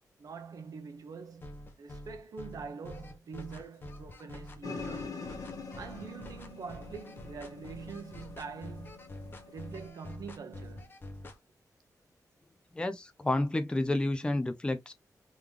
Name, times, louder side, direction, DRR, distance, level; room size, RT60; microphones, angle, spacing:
voice 1, 0.2-5.2 5.7-9.0 9.5-11.0, right 5 dB, 65° right, 1.0 m, -45 dB
sound 1, 1.4-11.4, left 1 dB, 35° left, 1.2 m, -46 dB
sound 2, 4.6-9.9, left 3 dB, 60° left, 1.5 m, -44 dB
voice 2, 12.7-14.9, left 1 dB, 15° left, 0.6 m, -30 dB
3.9 x 3.0 x 3.4 m
wide cardioid pair, 140°, 7 cm